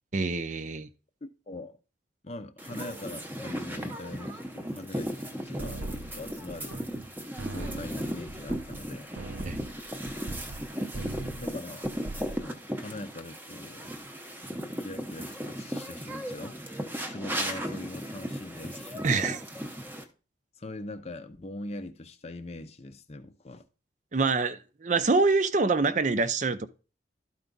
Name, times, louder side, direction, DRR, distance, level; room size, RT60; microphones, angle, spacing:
voice 1, 0.1-0.9 9.5-9.6 19.0-19.4 24.1-26.7, right 3 dB, 40° right, 0.5 m, -25 dB
voice 2, 1.2-1.8 2.2-6.7 7.5-9.1 11.4-11.9 12.3-13.9 14.8-16.6 17.0-19.1 20.6-23.6, left 2 dB, 35° left, 0.6 m, -42 dB
sound 1, 2.6-20.0, equal, 10° right, 0.8 m, -36 dB
sound 2, 5.6-7.1 7.4-10.7 10.9-11.5 11.8-12.4, right 2 dB, 85° right, 0.7 m, -39 dB
12.0 x 4.6 x 3.9 m
head